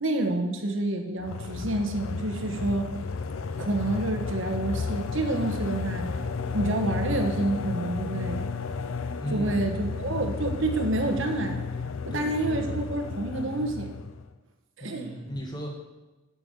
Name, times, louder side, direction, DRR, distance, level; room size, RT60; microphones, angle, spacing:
voice 1, 0.0-2.9 3.6-6.1 6.5-8.4 9.3-11.6 12.0-13.9 14.8-15.1, right 2 dB, 70° right, 4 dB, 1.2 m, -28 dB
sound 1, 1.2-14.3, left 4 dB, 80° left, 0.5 m, -33 dB
voice 2, 9.2-9.8 12.1-12.8 14.8-15.7, equal, 20° left, -1 dB, 1.4 m, -36 dB
7.5 x 6.3 x 6.6 m, 1.1 s
head